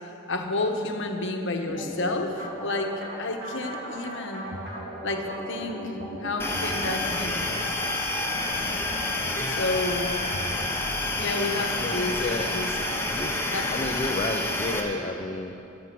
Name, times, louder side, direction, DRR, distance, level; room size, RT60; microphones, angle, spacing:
voice 1, 0.3-4.5 5.0-7.4 9.5-10.2 11.2-12.7 13.5-13.7, left 2 dB, 60° left, 4 dB, 1.2 m, -30 dB
sound 1, 1.7-6.8, right 1 dB, 55° right, 3.0 m, -37 dB
sound 2, 6.4-14.8, left 2 dB, 10° left, 1.1 m, -28 dB
voice 2, 11.8-12.9 13.1-15.6, left 2 dB, 30° left, 2 dB, 0.6 m, -32 dB
13.5 x 11.0 x 6.0 m, 2.7 s
head